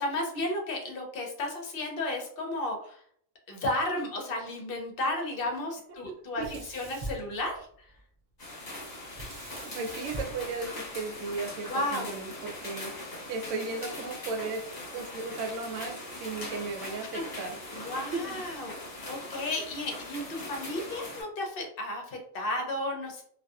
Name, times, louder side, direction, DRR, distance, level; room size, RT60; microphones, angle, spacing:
voice 1, 0.0-3.0 3.5-7.7 11.7-12.1 17.1-17.2 17.7-18.7 19.1-23.2, left 1 dB, 55° left, 1 dB, 0.7 m, -33 dB
voice 2, 6.0-6.6 9.6-14.6 14.9-18.4, right 3 dB, 75° right, 4 dB, 0.9 m, -36 dB
Sink (filling or washing), 6.4-8.0 9.1-11.4, right 2 dB, 50° right, 0.6 m, -43 dB
sound 1, 8.4-21.2, left 1 dB, 35° left, 1.0 m, -41 dB
2.6 x 2.3 x 2.3 m, 0.64 s
omnidirectional pair, 1.3 m